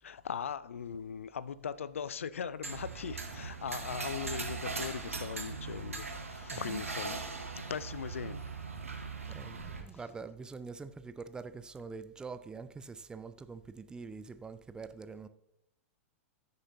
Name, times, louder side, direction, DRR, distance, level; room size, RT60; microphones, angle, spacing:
voice 1, 0.0-7.3 7.7-8.5, left 7 dB, 70° left, 0.4 m, -39 dB
sound 1, 2.6-9.8, right 4 dB, 80° right, 1.3 m, -40 dB
voice 2, 9.3-15.3, right 4 dB, 10° right, 0.4 m, -45 dB
14.0 x 6.7 x 2.8 m
figure-of-eight pair, 100°, 7 cm